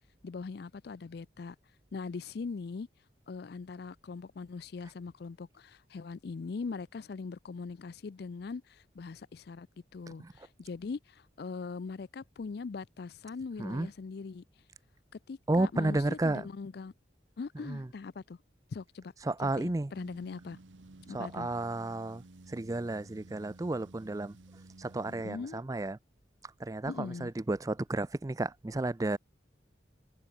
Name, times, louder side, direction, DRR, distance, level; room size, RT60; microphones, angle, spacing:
voice 1, 0.2-1.6 1.9-2.9 3.3-9.7 9.9-14.4 15.3-16.9 17.4-18.4 18.7-19.1 19.4-20.6 21.1-21.5 25.1-25.6 26.8-27.3, left 4 dB, 55° left, 0.4 m, -41 dB
voice 2, 15.5-16.4 17.7-17.9 19.2-19.9 21.1-22.2 22.5-24.3 24.8-26.0 26.6-29.2, right 2 dB, 20° right, 0.4 m, -32 dB
sound 1, 19.9-25.3, right 2 dB, 90° right, 1.2 m, -54 dB
head